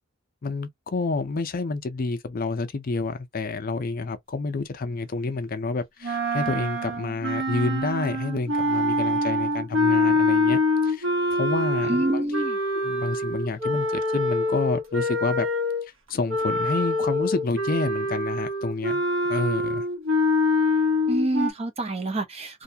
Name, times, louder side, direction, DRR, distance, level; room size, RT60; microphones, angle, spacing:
voice 1, 0.4-11.1 11.3-12.3 12.8-15.5 16.1-19.0 19.3-19.8, left 3 dB, 45° left, 0.5 m, -29 dB
sound 1, 6.0-15.9 16.3-21.5, left 2 dB, 75° right, 1.1 m, -25 dB
voice 2, 11.8-12.6 21.1-22.6, right 1 dB, 30° right, 0.6 m, -27 dB
2.6 x 2.2 x 2.6 m
head